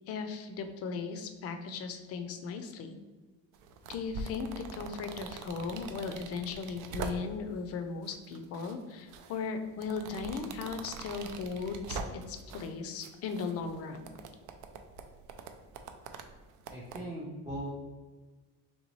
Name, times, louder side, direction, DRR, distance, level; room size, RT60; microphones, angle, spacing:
voice 1, 0.1-3.0 3.9-14.1, left 5 dB, 50° left, 8 dB, 0.4 m, -37 dB
sound 1, 3.5-7.5 8.0-8.7 9.1-12.7 13.0-17.0, right 4 dB, 70° right, 0.5 m, -43 dB
voice 2, 16.7-17.7, right 1 dB, 10° right, -6 dB, 0.5 m, -39 dB
4.0 x 3.1 x 3.0 m, 1.3 s
cardioid pair, 160°, 32 cm